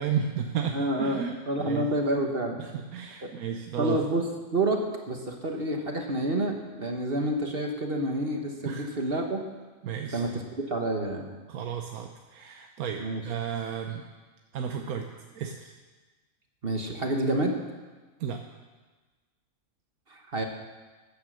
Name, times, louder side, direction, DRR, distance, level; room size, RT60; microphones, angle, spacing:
voice 1, 0.0-1.3 1.6-1.9 2.6-4.0 8.6-8.9 9.8-10.2 11.5-14.0 14.5-15.1 15.3-15.7 18.2-18.4, right 7 dB, 85° right, 3 dB, 1.3 m, -33 dB
voice 2, 0.7-2.6 3.2-3.3 3.8-9.4 10.1-10.4 10.7-11.2 13.0-13.2 16.6-17.6 20.1-20.5, right 1 dB, 40° right, 3 dB, 1.5 m, -28 dB
15.0 x 10.0 x 6.4 m, 1.3 s
omnidirectional pair, 1.5 m